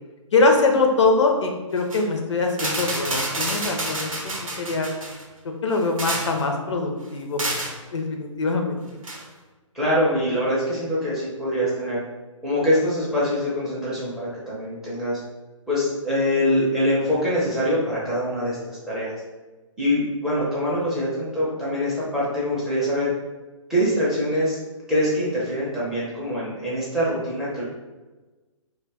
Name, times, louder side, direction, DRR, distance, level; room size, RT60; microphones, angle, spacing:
voice 1, 0.3-4.3 4.6-4.9 5.6-7.4 7.9-8.8, left 3 dB, 60° left, 3 dB, 0.4 m, -22 dB
sound 1, 1.8-2.0 2.5-5.2 5.7-6.4 7.4-7.8 9.0-9.2, right 2 dB, 80° right, 0.6 m, -29 dB
voice 2, 9.7-12.0 12.4-15.2 15.7-19.1 19.8-23.1 23.7-24.6 24.9-27.6, equal, 5° right, -9 dB, 0.4 m, -24 dB
2.2 x 2.1 x 3.2 m, 1.2 s
figure-of-eight pair, 135°, 17 cm